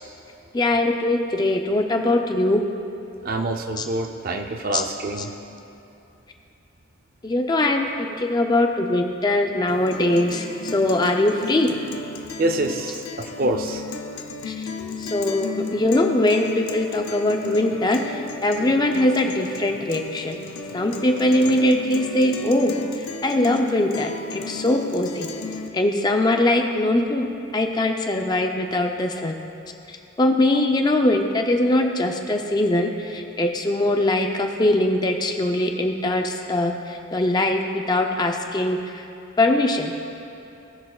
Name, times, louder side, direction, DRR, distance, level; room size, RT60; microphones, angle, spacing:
voice 1, 0.5-2.6 3.8-3.9 4.7-4.8 7.2-11.7 14.4-14.5 15.0-20.4 20.7-25.3 25.7-27.3 27.5-29.4 29.9-39.0 39.4-39.9, left 1 dB, 20° left, 3 dB, 0.5 m, -22 dB
voice 2, 3.2-5.3 12.4-13.8, right 2 dB, 45° right, 5 dB, 0.5 m, -26 dB
Guitar, 9.7-25.7, left 4 dB, 85° left, 0.7 m, -34 dB
18.5 x 6.5 x 2.4 m, 2.8 s
head